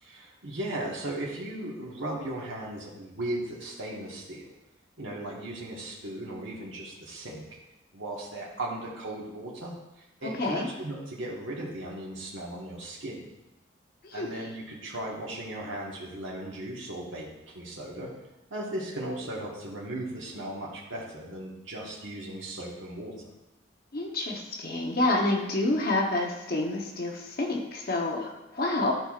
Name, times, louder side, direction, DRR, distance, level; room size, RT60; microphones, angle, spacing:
voice 1, 0.0-4.5 5.0-7.4 7.9-9.7 10.2-13.3 14.1-17.3 17.5-18.1 18.5-23.1, right 1 dB, 75° right, -4 dB, 1.4 m, -37 dB
voice 2, 10.2-10.7 14.0-14.4 23.9-28.9, left 2 dB, 50° left, 0 dB, 0.9 m, -28 dB
12.0 x 4.5 x 2.4 m, 0.94 s
head